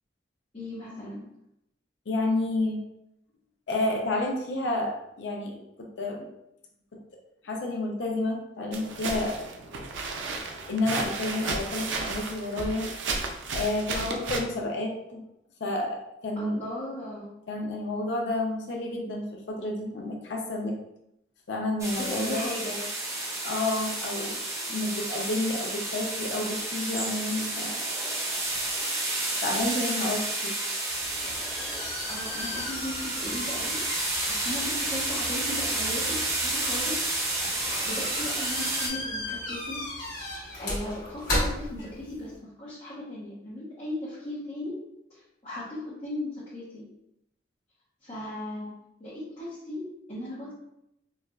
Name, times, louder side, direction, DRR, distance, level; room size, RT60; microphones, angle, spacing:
voice 1, 0.5-1.2 13.9-14.3 16.4-17.3 22.0-22.8 32.0-37.1 37.8-39.9 40.1-44.8 45.1-46.9 48.0-48.7 49.0-50.5, left 1 dB, 30° left, -10 dB, 0.8 m, -37 dB
voice 2, 2.1-2.8 3.7-5.6 6.0-6.3 7.4-9.4 10.7-12.9 13.5-15.2 15.6-16.0 16.2-16.6 17.5-20.8 21.5-22.4 23.4-24.4 24.7-27.8 29.4-30.6, left 2 dB, 70° left, 0 dB, 0.6 m, -30 dB
sound 1, 8.7-14.4, right 3 dB, 80° right, 0.5 m, -33 dB
sound 2, 21.8-38.9, right 2 dB, 15° right, 0.4 m, -31 dB
sound 3, 30.9-42.4, left 1 dB, 50° left, 1.3 m, -36 dB
4.1 x 2.3 x 2.3 m, 0.82 s
head